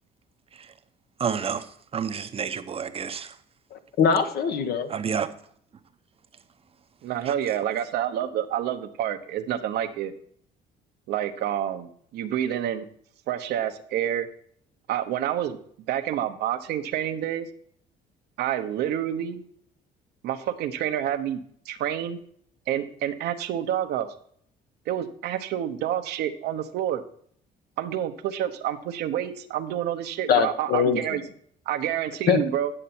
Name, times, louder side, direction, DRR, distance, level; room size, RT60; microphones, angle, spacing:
voice 1, 1.2-3.4 4.9-5.3 7.3-7.4, right 7 dB, 35° right, 0.8 m, -30 dB
voice 2, 3.7-4.9 30.3-31.0 32.3-32.4, left 7 dB, 65° left, 1.2 m, -22 dB
voice 3, 7.0-10.1 11.1-12.9 13.3-14.3 14.9-15.6 15.9-17.5 18.4-19.4 20.2-21.4 21.6-22.2 22.7-24.1 24.9-27.0 27.8-31.2 31.7-32.7, right 10 dB, 80° right, 1.0 m, -28 dB
10.0 x 6.7 x 4.3 m
cardioid pair, 110°, 17 cm